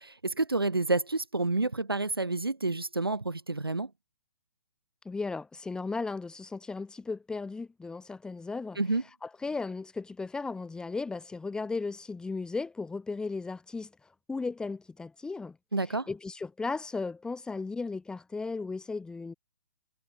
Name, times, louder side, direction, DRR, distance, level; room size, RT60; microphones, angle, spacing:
voice 1, 0.0-3.9 8.8-9.0 15.7-16.1, right 2 dB, 90° right, 5.9 m, -29 dB
voice 2, 5.1-8.8 9.2-13.9 14.3-15.6 15.8-19.3, left 4 dB, 5° left, 3.5 m, -36 dB
figure-of-eight pair, 130°, 12 cm